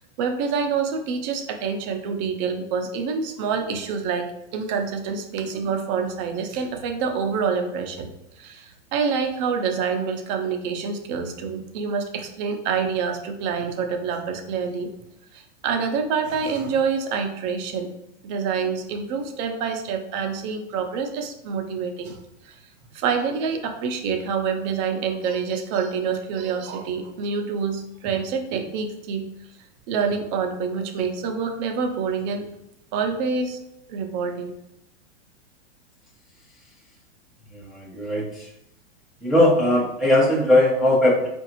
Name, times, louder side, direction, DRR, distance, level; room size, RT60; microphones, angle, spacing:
voice 1, 0.2-8.1 8.4-14.9 15.3-17.9 18.2-22.2 22.5-22.6 22.9-29.2 29.9-32.5 32.9-33.6 33.9-34.5, right 6 dB, 40° right, 5 dB, 0.6 m, -27 dB
voice 2, 37.5-38.5 39.2-41.3, left 1 dB, ahead, -7 dB, 0.5 m, -19 dB
4.6 x 2.5 x 2.9 m, 0.83 s
hypercardioid pair, 135°, 35 cm